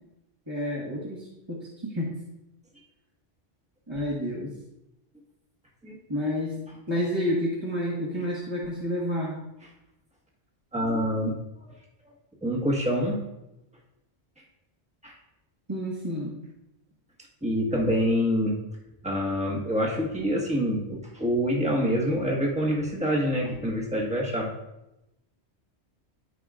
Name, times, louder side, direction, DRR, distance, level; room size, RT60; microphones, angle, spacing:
voice 1, 0.5-2.1 3.9-4.5 6.1-6.5 6.9-9.3 15.7-16.3, equal, 25° right, -7 dB, 1.5 m, -29 dB
voice 2, 5.8-6.2 10.7-11.3 12.4-13.2 15.0-15.1 17.4-18.6 19.0-24.5, equal, 5° right, -2 dB, 1.4 m, -26 dB
14.5 x 4.9 x 2.5 m, 0.91 s
omnidirectional pair, 1.1 m